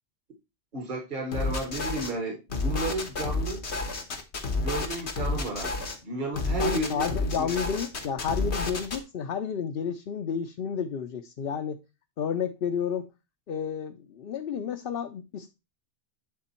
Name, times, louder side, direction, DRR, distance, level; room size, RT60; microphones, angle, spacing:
voice 1, 0.7-3.6 4.6-5.7 6.0-7.0 7.4-7.6, right 2 dB, 50° right, 1.6 m, -32 dB
sound 1, 1.3-2.1 2.5-6.0 6.3-9.0, left 3 dB, 90° left, 1.7 m, -30 dB
voice 2, 6.6-11.8 12.2-13.1 13.5-15.5, left 7 dB, 60° left, 0.8 m, -31 dB
9.6 x 3.9 x 4.3 m
omnidirectional pair, 1.1 m